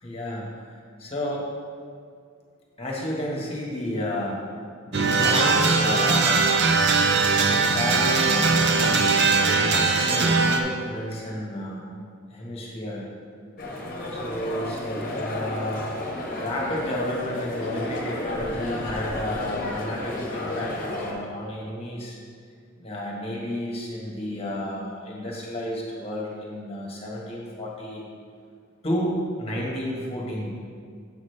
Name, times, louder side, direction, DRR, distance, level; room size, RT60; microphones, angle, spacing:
voice 1, 0.0-0.6 1.0-1.4 2.8-4.4 4.9-6.7 7.3-9.1 9.4-11.8 12.3-13.1 14.1-15.9 16.3-22.2 22.8-28.0 28.8-30.5, left 1 dB, 30° left, -3 dB, 1.4 m, -31 dB
sound 1, 4.9-10.6, right 4 dB, 60° right, 0.6 m, -20 dB
sound 2, 13.6-21.1, left 1 dB, 45° left, 1.1 m, -32 dB
7.1 x 6.3 x 3.3 m, 2.2 s
head